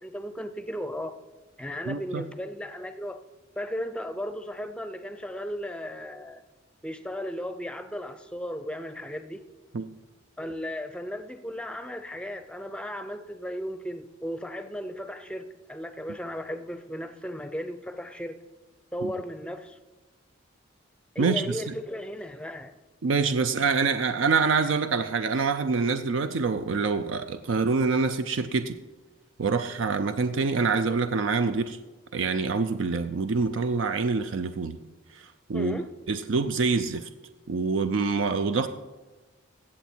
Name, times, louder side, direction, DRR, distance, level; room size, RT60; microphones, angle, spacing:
voice 1, 0.0-1.2 1.6-3.2 3.6-6.4 6.8-9.4 10.4-18.3 18.9-19.8 21.1-22.7 35.5-35.9, equal, 5° left, 9 dB, 0.5 m, -35 dB
voice 2, 1.9-2.2 9.7-9.9 19.0-19.1 21.2-21.6 23.0-28.8 29.4-31.8 32.1-34.8 35.1-35.8 36.1-37.1 37.5-38.7, right 4 dB, 70° right, 10 dB, 0.5 m, -26 dB
16.5 x 7.1 x 4.4 m, 1.2 s
head